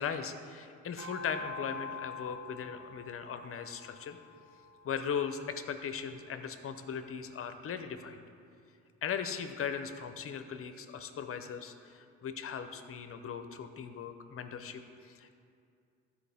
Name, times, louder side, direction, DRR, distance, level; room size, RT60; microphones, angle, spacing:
voice 1, 0.0-4.2 4.8-8.2 9.0-15.3, left 7 dB, 45° left, 8 dB, 0.7 m, -38 dB
sound 1, 1.0-5.6, left 4 dB, 40° right, 1.6 m, -46 dB
13.0 x 4.6 x 3.5 m, 2.4 s
cardioid pair, 90°, 30 cm